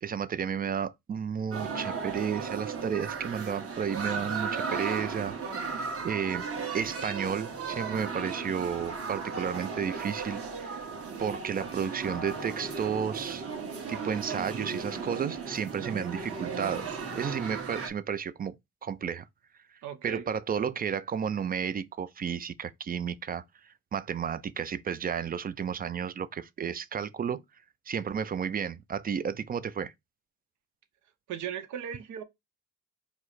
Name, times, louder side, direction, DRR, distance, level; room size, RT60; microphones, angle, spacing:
voice 1, 0.0-5.3 5.7-6.5 6.7-10.8 11.2-13.5 13.9-16.9 17.1-18.6 18.8-19.3 20.0-23.4 23.9-27.4 27.9-29.9, right 7 dB, 30° right, 0.4 m, -32 dB
sound 1, 1.5-17.9, right 5 dB, 50° right, 1.4 m, -36 dB
voice 2, 15.8-16.1 19.8-20.3 31.3-32.2, right 9 dB, 75° right, 0.8 m, -38 dB
4.7 x 2.1 x 4.0 m
cardioid pair, 90°, 30 cm